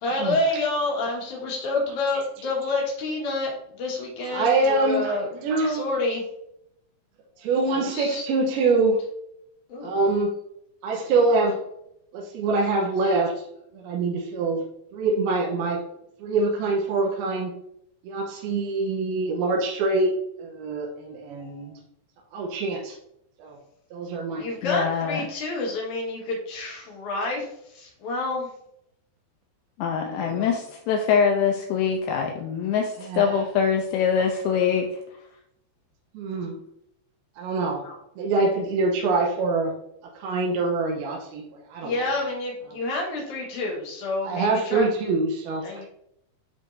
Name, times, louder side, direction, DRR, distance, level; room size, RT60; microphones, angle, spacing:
voice 1, 0.0-5.3 5.6-6.2 7.7-8.2 8.6-8.8 9.7-10.0 11.0-11.1 24.4-28.5 30.3-30.6 41.8-44.9 45.6-45.9, left 2 dB, 60° left, -2 dB, 2.2 m, -29 dB
voice 2, 4.3-5.2 5.4-5.9 7.4-9.0 9.8-10.3 10.8-11.6 12.1-13.3 13.7-14.6 14.9-15.8 16.2-17.5 18.0-20.1 20.4-21.8 22.3-22.9 23.4-23.6 23.9-24.4 30.0-30.4 33.0-33.5 36.1-36.6 37.4-37.8 38.2-39.7 40.2-41.4 41.7-41.9 44.2-45.9, right 3 dB, 80° right, -1 dB, 2.2 m, -24 dB
voice 3, 24.6-25.2 29.8-34.9 36.4-36.6 37.8-38.0, left 7 dB, 90° left, 2 dB, 2.5 m, -24 dB
11.0 x 3.7 x 2.6 m, 0.74 s
omnidirectional pair, 5.7 m